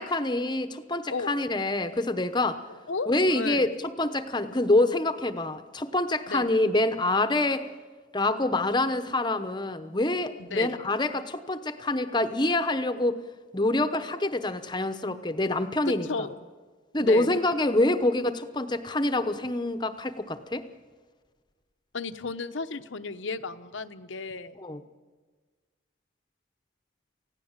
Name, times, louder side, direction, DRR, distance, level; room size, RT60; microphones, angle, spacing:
voice 1, 0.0-2.6 3.1-7.7 8.1-13.2 13.5-16.1 16.9-20.6 24.6-24.8, left 2 dB, 20° left, 9 dB, 0.9 m, -26 dB
voice 2, 2.7-3.7 6.3-6.5 10.4-10.8 15.8-16.4 17.0-17.3 21.9-24.6, left 4 dB, 80° left, 9 dB, 1.0 m, -33 dB
28.5 x 16.5 x 7.4 m, 1.4 s
head